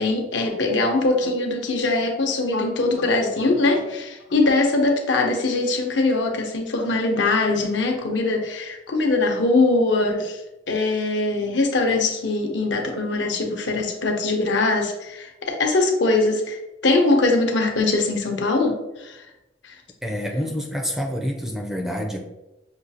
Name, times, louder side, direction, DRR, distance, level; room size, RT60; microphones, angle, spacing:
voice 1, 0.0-10.4 10.7-19.2 19.6-19.8, left 2 dB, 75° left, 2 dB, 0.8 m, -22 dB
voice 2, 20.0-22.2, equal, ahead, 1 dB, 0.4 m, -27 dB
6.1 x 2.4 x 2.7 m, 0.95 s
head